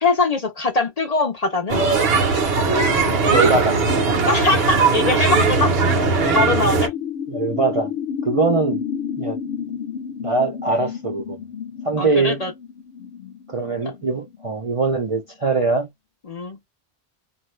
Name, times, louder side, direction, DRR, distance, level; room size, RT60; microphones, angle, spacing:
voice 1, 0.0-1.8 4.2-5.7 6.3-6.9 12.0-12.5 16.3-16.6, left 3 dB, 45° left, 0.6 m, -21 dB
sound 1, 1.7-6.9, right 4 dB, 70° right, 1.1 m, -19 dB
sound 2, 3.0-15.1, left 8 dB, 85° left, 0.9 m, -32 dB
voice 2, 3.3-3.8 7.3-7.9 8.2-8.8 9.2-9.4 10.2-11.4 11.8-12.4 13.5-15.9, right 3 dB, 40° right, 0.5 m, -21 dB
2.6 x 2.2 x 3.1 m
omnidirectional pair, 1.1 m